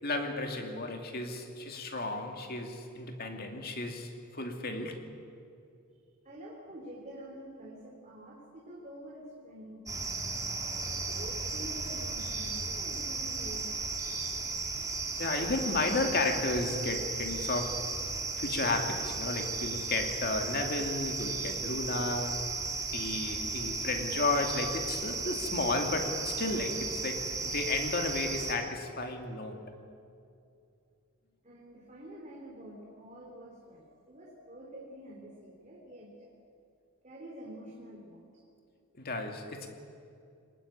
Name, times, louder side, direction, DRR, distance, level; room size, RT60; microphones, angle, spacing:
voice 1, 0.0-5.0 15.2-17.9 18.4-22.5 22.9-29.6 38.9-39.7, left 2 dB, 45° left, 4 dB, 2.5 m, -33 dB
voice 2, 6.2-10.2 11.0-13.9 31.4-36.4 37.0-38.2, right 1 dB, 35° right, -3 dB, 3.4 m, -47 dB
sound 1, 9.9-28.5, right 3 dB, 15° right, 2.6 m, -35 dB
23.5 x 21.0 x 8.7 m, 2.5 s
head